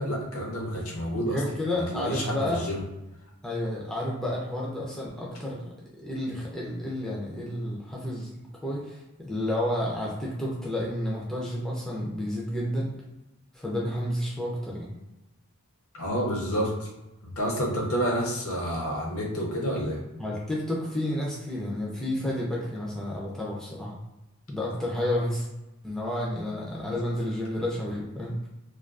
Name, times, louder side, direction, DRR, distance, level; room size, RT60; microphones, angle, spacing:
voice 1, 0.0-1.4 1.8-2.8 15.9-16.9 17.2-20.0, equal, 70° left, -1 dB, 0.6 m, -29 dB
voice 2, 1.1-2.6 3.4-5.6 5.9-12.9 13.5-14.9 20.2-24.0 24.5-25.5 25.8-28.5, left 1 dB, ahead, -5 dB, 0.3 m, -31 dB
2.4 x 2.2 x 2.3 m, 0.97 s
head